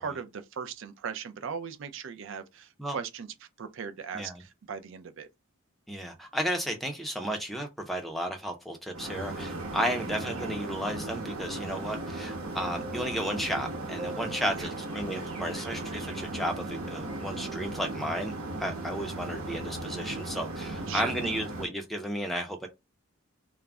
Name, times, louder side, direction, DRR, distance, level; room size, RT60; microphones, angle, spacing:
voice 1, 0.0-5.3 14.6-14.7 20.9-21.4, right 6 dB, 60° right, 0.4 m, -38 dB
voice 2, 5.9-22.7, equal, ahead, 0.4 m, -33 dB
sound 1, 8.9-21.7, right 2 dB, 80° right, 1.0 m, -37 dB
sound 2, 11.3-16.8 17.1-17.3, right 2 dB, 30° right, 0.7 m, -47 dB
2.3 x 2.0 x 3.4 m
head